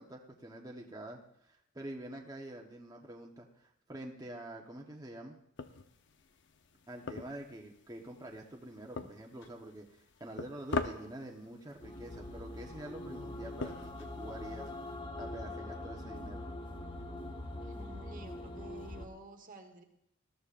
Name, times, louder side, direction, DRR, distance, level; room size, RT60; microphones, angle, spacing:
voice 1, 0.0-5.4 6.9-16.4, right 1 dB, 20° right, 0 dB, 1.1 m, -47 dB
sound 1, 5.6-14.9, left 3 dB, 65° left, 0.8 m, -44 dB
sound 2, 11.8-19.1, left 1 dB, 25° left, 1.0 m, -43 dB
voice 2, 17.6-19.8, right 2 dB, 40° right, 6 dB, 1.3 m, -51 dB
20.0 x 14.0 x 2.5 m, 0.78 s
head